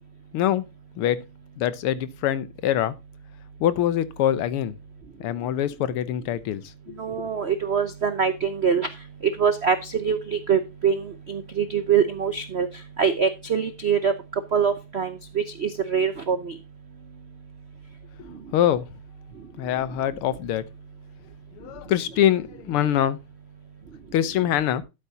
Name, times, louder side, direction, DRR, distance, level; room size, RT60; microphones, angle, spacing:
voice 1, 0.3-0.6 1.0-1.2 1.6-3.0 3.6-4.8 5.2-6.6 7.1-7.3 18.5-18.9 19.6-20.6 21.6-23.2 24.1-24.8, left 11 dB, 80° left, 1.8 m, -24 dB
voice 2, 7.0-8.9 9.4-11.0 11.3-12.7 13.0-14.1 14.5-15.1 15.6-16.5, right 6 dB, 80° right, 0.5 m, -23 dB
12.5 x 8.4 x 2.8 m
omnidirectional pair, 2.4 m